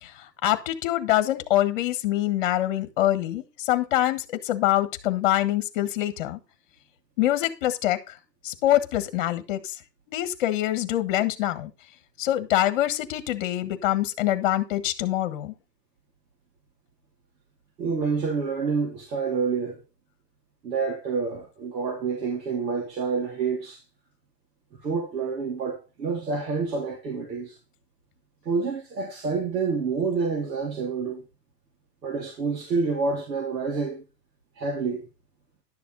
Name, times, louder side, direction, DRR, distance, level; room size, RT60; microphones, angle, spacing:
voice 1, 0.0-6.4 7.2-8.2 8.4-9.8 10.1-11.7 12.2-15.5, left 14 dB, 30° left, 1.3 m, -25 dB
voice 2, 17.8-19.8 20.6-23.8 24.8-27.6 28.5-31.2 32.0-34.0 34.6-35.1, right 5 dB, 85° right, 3.5 m, -28 dB
11.5 x 7.0 x 4.0 m
hypercardioid pair, 165°, 49 cm